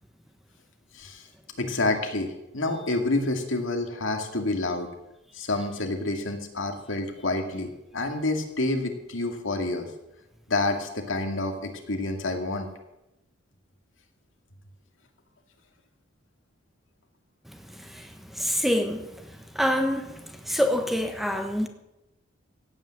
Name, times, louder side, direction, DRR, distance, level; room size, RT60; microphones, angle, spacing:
voice 1, 0.9-1.3 1.6-4.9 5.3-9.9 10.5-12.7, left 2 dB, 75° left, 4 dB, 2.3 m, -28 dB
voice 2, 17.5-21.7, equal, ahead, 6 dB, 1.2 m, -27 dB
16.5 x 9.0 x 7.7 m, 0.94 s
head